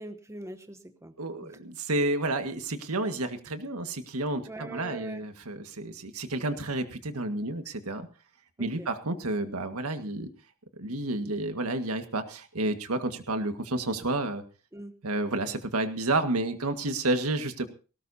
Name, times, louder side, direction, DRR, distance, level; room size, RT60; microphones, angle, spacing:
voice 1, 0.0-1.1 1.4-1.6 4.5-5.3 8.6-8.9 14.7-14.9, right 1 dB, 15° right, 8 dB, 1.0 m, -42 dB
voice 2, 1.2-8.1 8.6-10.3 10.8-14.4 15.0-17.7, right 2 dB, 90° right, 7 dB, 1.8 m, -30 dB
19.0 x 18.0 x 2.8 m, 0.36 s
head